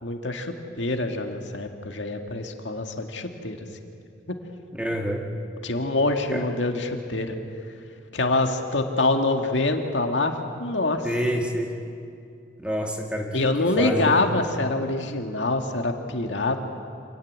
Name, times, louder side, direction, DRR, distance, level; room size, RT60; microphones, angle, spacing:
voice 1, 0.0-3.6 5.6-7.4 8.1-10.3 10.6-11.1 13.3-16.6, left 2 dB, 85° left, 4 dB, 2.0 m, -25 dB
voice 2, 4.7-5.3 6.3-6.4 11.0-11.7 12.6-14.3, equal, 5° right, 1 dB, 2.3 m, -28 dB
27.0 x 17.0 x 9.6 m, 2.4 s
head